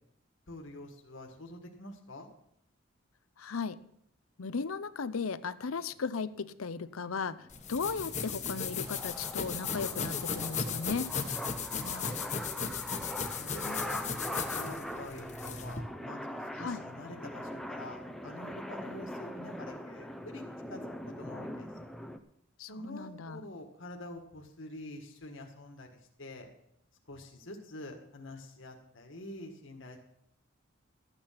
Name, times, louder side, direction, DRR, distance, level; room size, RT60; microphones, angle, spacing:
voice 1, 0.5-2.3 11.8-12.2 13.4-14.1 14.5-20.4 20.7-20.8 21.2-21.7 22.6-26.5 27.1-30.0, left 1 dB, 65° left, 2 dB, 1.7 m, -46 dB
voice 2, 3.4-3.8 4.4-11.1 16.6-16.8 22.6-23.4, left 5 dB, 85° left, 14 dB, 0.6 m, -36 dB
sound 1, 6.9-22.2, equal, ahead, 0.6 m, -42 dB
sound 2, 7.5-15.8, left 6 dB, 35° left, 1.1 m, -36 dB
13.5 x 9.0 x 5.8 m, 0.73 s
head